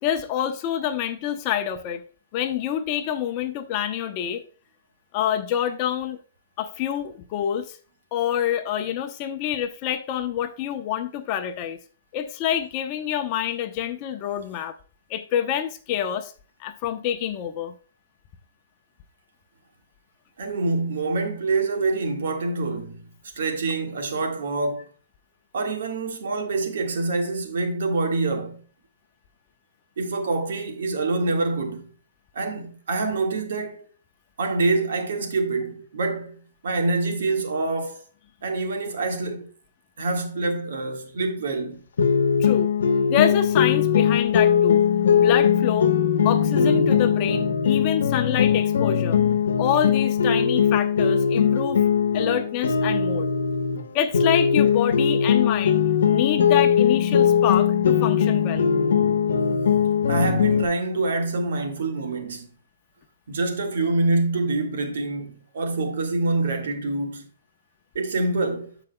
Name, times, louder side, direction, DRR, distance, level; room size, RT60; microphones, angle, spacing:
voice 1, 0.0-2.0 2.3-4.4 5.1-6.2 6.6-7.8 8.1-11.8 12.1-14.7 15.1-16.3 16.6-17.7 42.4-42.7 43.1-44.8 45.1-45.9 46.2-49.2 49.6-51.8 52.1-53.3 53.9-58.7, left 10 dB, 35° left, 0.7 m, -27 dB
voice 2, 20.4-23.0 23.4-24.9 25.5-28.6 30.0-31.9 32.3-33.9 34.4-36.4 36.6-38.0 38.4-39.5 40.0-41.8 60.1-62.5 63.3-67.3 68.0-68.7, right 3 dB, 75° right, 1.7 m, -26 dB
sound 1, 42.0-53.8 54.1-60.7, left 7 dB, 85° left, 0.9 m, -20 dB
13.5 x 5.0 x 2.2 m
hypercardioid pair, 150°, 0 cm